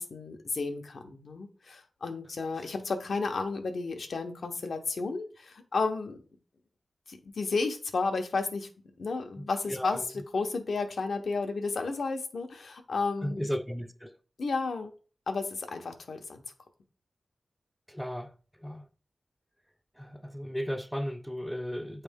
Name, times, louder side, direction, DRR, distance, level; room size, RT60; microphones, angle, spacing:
voice 1, 0.0-6.2 7.1-8.7 9.0-13.5 14.4-14.9 15.3-16.4, left 4 dB, 75° left, 0.9 m, -32 dB
voice 2, 9.7-10.0 13.2-14.1 17.9-18.3 18.6-18.8 20.0-22.0, equal, ahead, 0.6 m, -35 dB
8.2 x 3.3 x 3.6 m
wide cardioid pair, 90°, 0 cm